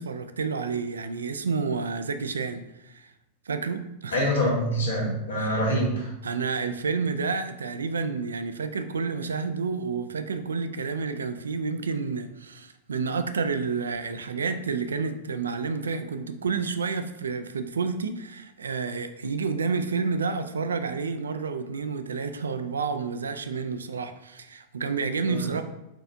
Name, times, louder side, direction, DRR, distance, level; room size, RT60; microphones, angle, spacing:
voice 1, 0.0-3.1 3.5-4.3 5.4-5.6 6.2-25.6, right 5 dB, 70° right, 0.3 m, -30 dB
voice 2, 4.1-6.1 25.3-25.5, equal, 75° left, 1.5 m, -25 dB
4.4 x 4.2 x 2.6 m
figure-of-eight pair, 90°, 0 cm